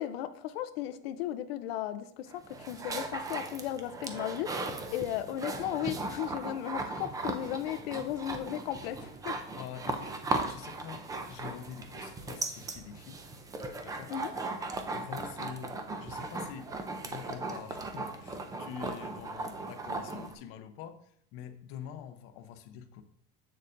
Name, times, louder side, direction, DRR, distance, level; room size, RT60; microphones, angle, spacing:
voice 1, 0.0-9.3 14.1-14.3, left 12 dB, 90° left, 10 dB, 0.6 m, -36 dB
sound 1, 2.3-20.3, right 3 dB, 10° right, 0.4 m, -38 dB
voice 2, 9.5-10.2 10.5-13.2 13.8-14.1 14.9-16.7 17.0-23.0, left 9 dB, 50° left, 8 dB, 0.7 m, -45 dB
7.6 x 6.7 x 2.5 m, 0.67 s
supercardioid pair, 150°, 29 cm